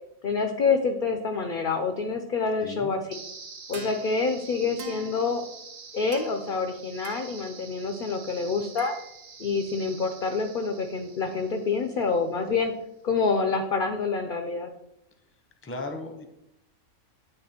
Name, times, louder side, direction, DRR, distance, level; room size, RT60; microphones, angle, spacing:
voice 1, 0.2-3.0 3.7-5.4 5.9-8.9 9.4-12.7 13.0-14.7, left 4 dB, 65° left, 6 dB, 0.5 m, -27 dB
voice 2, 2.6-2.9 15.6-16.2, left 2 dB, 15° left, 4 dB, 0.5 m, -36 dB
sound 1, 3.1-12.1, right 5 dB, 70° right, 1.4 m, -44 dB
9.1 x 3.3 x 4.2 m, 0.82 s
omnidirectional pair, 1.5 m